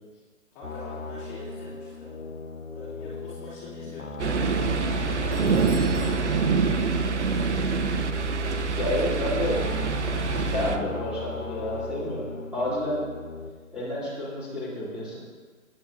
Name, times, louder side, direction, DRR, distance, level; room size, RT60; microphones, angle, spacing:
voice 1, 0.5-2.2 2.7-4.1 5.3-6.3, left 2 dB, 15° left, -8 dB, 3.0 m, -42 dB
sound 1, 0.6-13.5, left 4 dB, 80° left, 1.3 m, -38 dB
sound 2, 4.2-10.8, right 4 dB, 60° right, 1.0 m, -25 dB
Doorbell, 5.3-7.4 7.6-7.7 8.5-8.6, right 3 dB, 25° right, 3.7 m, -49 dB
voice 2, 8.8-9.7 10.5-13.0 13.7-15.2, left 1 dB, ahead, -11 dB, 2.9 m, -29 dB
20.0 x 9.4 x 2.8 m, 1.4 s
figure-of-eight pair, 140°, 40 cm